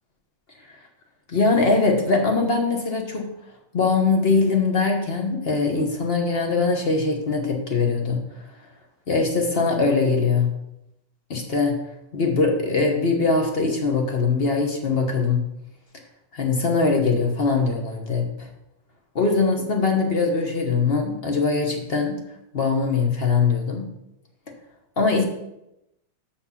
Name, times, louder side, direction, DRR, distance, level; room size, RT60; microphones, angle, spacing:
voice 1, 1.3-3.3 3.7-8.2 9.1-10.5 11.3-11.8 12.1-15.4 16.3-18.5 19.1-22.2 22.5-23.9 25.0-25.2, left 4 dB, 40° left, 2 dB, 1.0 m, -22 dB
6.1 x 6.1 x 5.7 m, 0.86 s
omnidirectional pair, 2.1 m